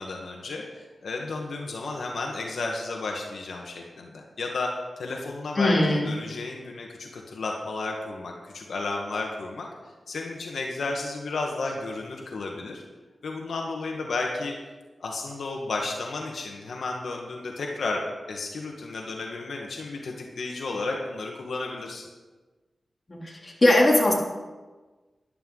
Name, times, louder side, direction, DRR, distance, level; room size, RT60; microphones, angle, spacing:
voice 1, 0.0-4.7 5.0-9.7 10.1-12.8 13.2-14.5 15.0-22.1, left 3 dB, 85° left, 0 dB, 1.4 m, -33 dB
voice 2, 5.6-6.1 23.1-24.1, left 1 dB, 35° left, -2 dB, 3.0 m, -20 dB
13.5 x 11.5 x 3.9 m, 1.3 s
wide cardioid pair, 70°, 0 cm